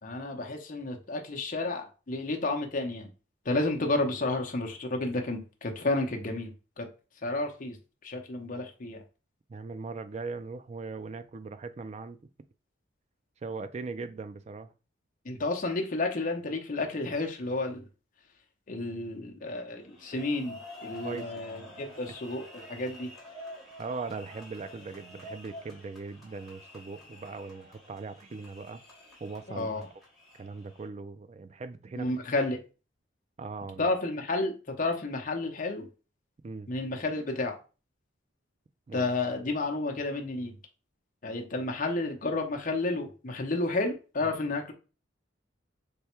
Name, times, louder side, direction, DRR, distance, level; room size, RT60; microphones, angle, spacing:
voice 1, 0.0-3.1 3.4-6.9 7.2-7.8 8.0-9.0 15.2-17.8 18.7-23.1 29.5-29.9 32.0-32.6 33.8-35.9 36.7-37.6 38.9-40.5 41.2-44.7, left 2 dB, 45° left, 0.7 m, -31 dB
voice 2, 9.5-12.2 13.4-14.7 21.0-21.4 23.8-28.8 29.2-29.8 30.4-32.1 33.4-33.9 36.4-36.7 38.9-39.1, right 4 dB, 35° right, 0.3 m, -39 dB
sound 1, 19.8-30.9, left 1 dB, ahead, 1.1 m, -48 dB
3.4 x 2.1 x 4.3 m
head